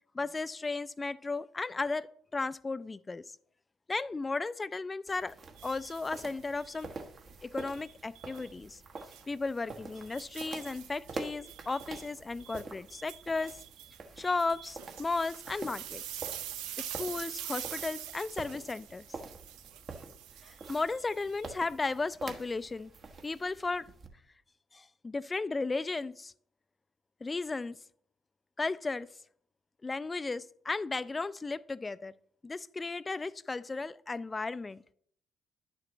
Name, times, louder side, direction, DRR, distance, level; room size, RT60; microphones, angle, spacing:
voice 1, 0.1-3.2 3.9-5.3 5.6-6.9 7.4-8.8 9.3-13.6 14.2-16.0 16.8-19.0 20.4-22.9 23.2-23.9 24.7-26.3 27.2-27.8 28.6-29.1 29.8-32.1 32.4-34.8, left 3 dB, 25° left, 0.3 m, -35 dB
sound 1, 5.1-24.1, right 3 dB, 50° right, 1.2 m, -47 dB
sound 2, 5.6-6.9 7.6-8.5 9.0-9.2 9.7-21.9, right 11 dB, 80° right, 0.6 m, -45 dB
10.5 x 6.7 x 3.0 m
hypercardioid pair, 55°, 0 cm